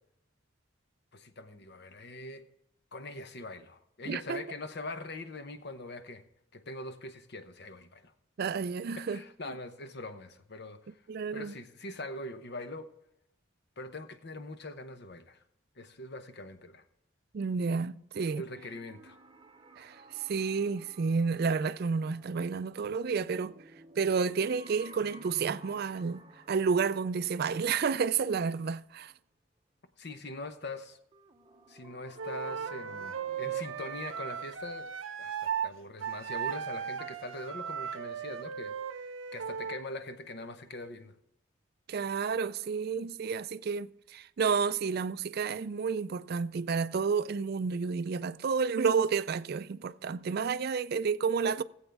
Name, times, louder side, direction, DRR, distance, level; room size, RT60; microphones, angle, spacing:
voice 1, 1.1-2.4 2.9-6.2 6.5-8.1 9.0-11.0 11.3-12.9 13.8-15.4 15.8-16.8 18.4-19.2 30.0-31.0 31.7-34.9 35.2-38.8 39.3-41.1, left 2 dB, 55° left, 0.9 m, -42 dB
voice 2, 4.1-4.4 8.4-9.2 11.1-11.5 17.3-18.4 19.8-23.5 24.0-29.1 41.9-51.6, right 5 dB, 50° right, 0.4 m, -30 dB
sound 1, 18.1-29.0 31.1-34.4, right 1 dB, 25° right, 0.7 m, -55 dB
Wind instrument woodwind instrument, 32.2-35.7 36.0-39.8, right 8 dB, 70° right, 0.7 m, -37 dB
18.5 x 8.0 x 3.5 m
head